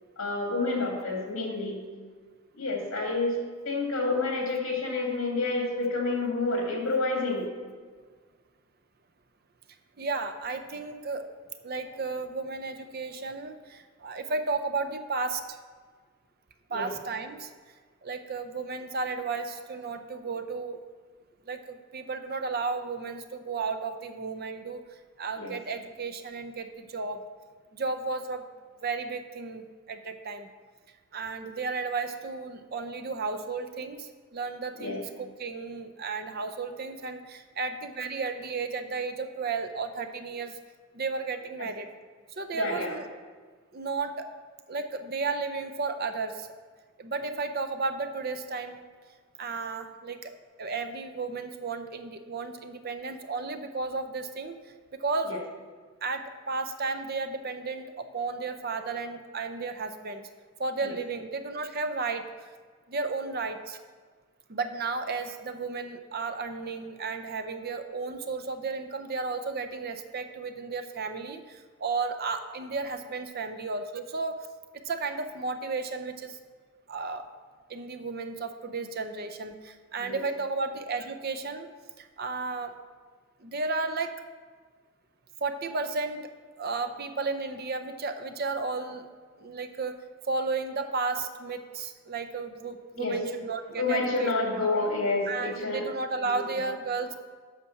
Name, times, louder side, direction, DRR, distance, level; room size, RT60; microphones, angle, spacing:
voice 1, 0.2-1.8 2.6-3.3 3.7-7.5 16.7-16.8 25.4-25.5 34.8-35.0 41.6-41.7 42.5-42.9 55.3-55.4 60.8-60.9 80.0-80.2 93.0-93.3 93.8-95.8 96.2-96.4, left 3 dB, 70° left, 0 dB, 2.3 m, -29 dB
voice 2, 10.0-11.3 11.6-15.6 16.7-17.5 18.0-20.8 21.5-24.8 25.2-27.2 27.7-28.4 28.8-30.5 31.1-40.5 40.9-41.9 42.4-43.0 43.7-44.3 44.7-46.5 47.0-48.8 49.4-50.3 50.6-54.6 55.0-55.4 56.0-60.2 60.6-62.5 62.9-63.8 64.5-74.4 74.8-76.4 76.9-77.2 77.7-81.7 82.0-82.7 83.4-84.1 85.4-86.3 86.6-89.1 89.4-90.0 90.3-94.3 95.3-97.2, right 4 dB, 45° right, 8 dB, 0.6 m, -33 dB
8.4 x 5.9 x 5.8 m, 1.5 s
head